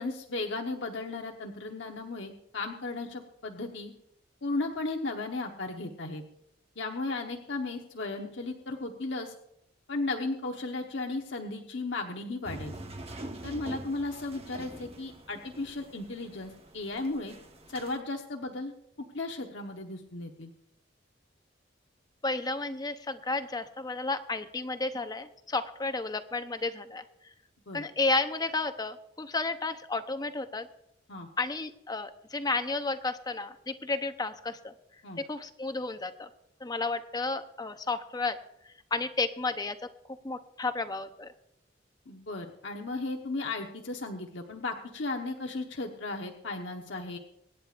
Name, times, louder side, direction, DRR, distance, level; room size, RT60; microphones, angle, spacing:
voice 1, 0.0-3.9 4.4-6.2 6.8-9.3 9.9-12.7 13.4-17.3 17.7-18.7 19.1-20.5 27.7-27.8 31.1-31.3 35.0-35.2 42.1-47.2, left 2 dB, 75° left, 2 dB, 1.1 m, -35 dB
sound 1, 12.4-18.0, right 1 dB, 35° right, 1.1 m, -44 dB
voice 2, 22.2-27.0 27.7-30.7 31.4-34.7 35.3-36.3 36.6-38.4 38.9-39.8 40.1-41.3, left 3 dB, 20° left, 9 dB, 0.8 m, -32 dB
25.0 x 10.0 x 2.5 m, 0.79 s
head